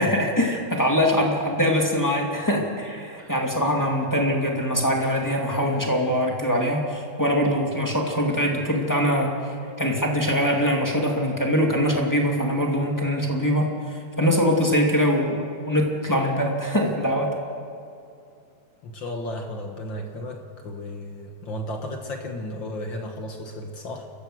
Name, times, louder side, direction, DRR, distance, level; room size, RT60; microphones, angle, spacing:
voice 1, 0.0-9.3 9.8-13.7 14.2-15.4 15.7-17.3, equal, 10° left, -1 dB, 1.2 m, -23 dB
voice 2, 18.8-24.1, left 1 dB, 65° left, 3 dB, 1.1 m, -34 dB
29.0 x 13.5 x 7.9 m, 2.4 s
omnidirectional pair, 4.4 m